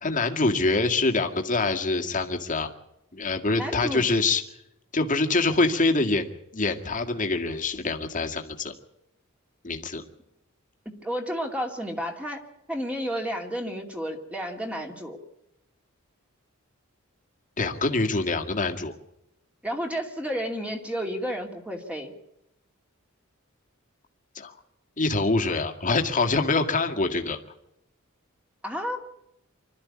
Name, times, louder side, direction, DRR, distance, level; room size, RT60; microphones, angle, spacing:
voice 1, 0.0-2.7 3.1-4.4 4.9-8.7 9.6-10.0 17.6-19.0 24.4-24.5 25.0-27.4, left 3 dB, 40° left, 4 dB, 2.0 m, -25 dB
voice 2, 3.6-4.1 10.9-15.2 19.6-22.1 28.6-29.0, equal, 5° right, 3 dB, 2.5 m, -31 dB
25.5 x 13.0 x 8.6 m, 0.85 s
head